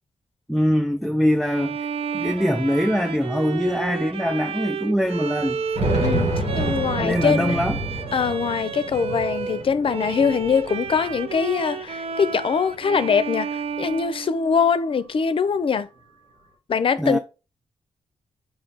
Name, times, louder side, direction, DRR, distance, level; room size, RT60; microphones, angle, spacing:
voice 1, 0.5-1.9 2.1-5.6 7.0-7.8 17.0-17.2, equal, ahead, 0.4 m, -23 dB
Bowed string instrument, 1.4-14.9, right 6 dB, 55° right, 0.5 m, -31 dB
sound 1, 1.8-1.9 2.1-2.2 3.1-3.2 3.6-3.7 5.4-11.8 12.2-13.2, right 1 dB, 80° right, 2.8 m, -29 dB
voice 2, 6.0-7.6 8.1-15.9 16.7-17.2, left 6 dB, 50° left, 0.5 m, -23 dB
5.2 x 2.3 x 3.9 m
cardioid pair, 60°, 11 cm